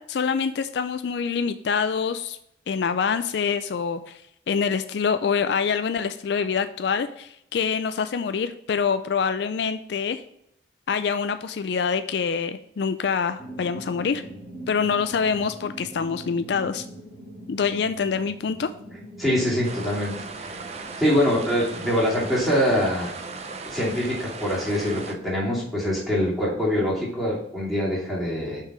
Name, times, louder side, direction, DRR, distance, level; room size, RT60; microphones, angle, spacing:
voice 1, 0.0-2.4 2.7-4.2 4.5-10.2 10.9-14.2 14.7-16.9 17.5-18.7, left 6 dB, 65° left, 11 dB, 0.4 m, -25 dB
sound 1, 13.4-25.9, right 1 dB, 15° left, 1.9 m, -44 dB
voice 2, 19.2-20.6 21.0-23.2 23.7-28.6, equal, ahead, -8 dB, 2.7 m, -24 dB
sound 2, 19.6-25.2, right 4 dB, 35° right, 0.6 m, -37 dB
5.9 x 4.7 x 4.9 m, 0.75 s
head